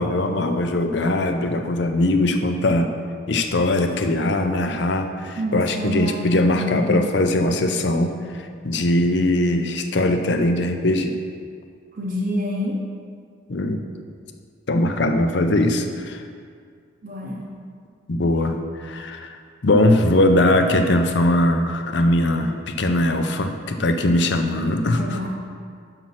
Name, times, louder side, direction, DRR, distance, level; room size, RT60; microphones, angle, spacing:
voice 1, 0.0-2.9 3.3-11.2 13.5-13.8 14.7-16.2 18.1-25.2, left 1 dB, 65° left, 6 dB, 0.6 m, -21 dB
voice 2, 5.4-7.1 11.9-12.8 17.0-17.5 24.8-25.3, equal, 45° right, -3 dB, 0.8 m, -28 dB
6.1 x 5.5 x 5.8 m, 2.1 s
head